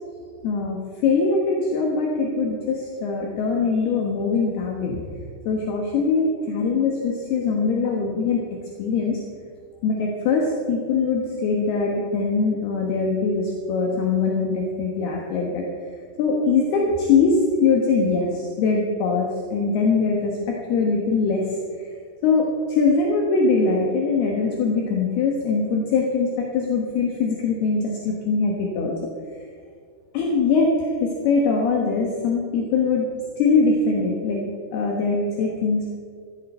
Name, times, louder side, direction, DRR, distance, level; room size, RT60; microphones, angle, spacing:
voice 1, 0.4-0.8 1.0-5.1 5.5-8.4 8.8-9.2 9.8-15.6 16.2-21.9 22.2-28.9 30.1-33.1 33.4-35.9, left 4 dB, 70° left, 0 dB, 3.1 m, -22 dB
15.0 x 15.0 x 4.4 m, 2.2 s
omnidirectional pair, 5.1 m